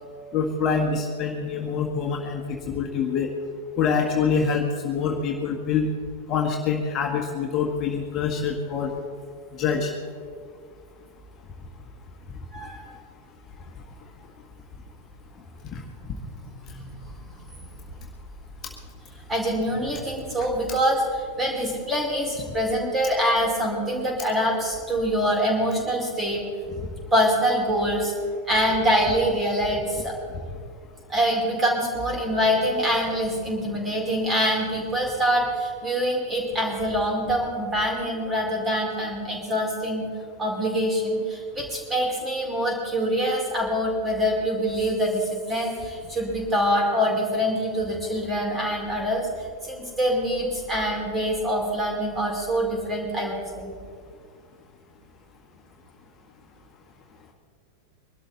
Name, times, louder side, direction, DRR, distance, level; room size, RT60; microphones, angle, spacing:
voice 1, 0.3-3.3 3.8-5.9 6.3-8.9 9.6-9.9 15.7-15.8, left 6 dB, 35° left, 0 dB, 1.6 m, -25 dB
voice 2, 12.5-12.8 15.8-15.9 16.7-17.1 17.6-17.7 19.3-21.0 21.4-26.4 27.1-28.1 28.5-30.2 31.1-40.1 40.4-49.3 49.6-53.7, equal, 15° right, -1 dB, 4.7 m, -25 dB
23.0 x 12.5 x 4.1 m, 2.1 s
figure-of-eight pair, 90°, 0 cm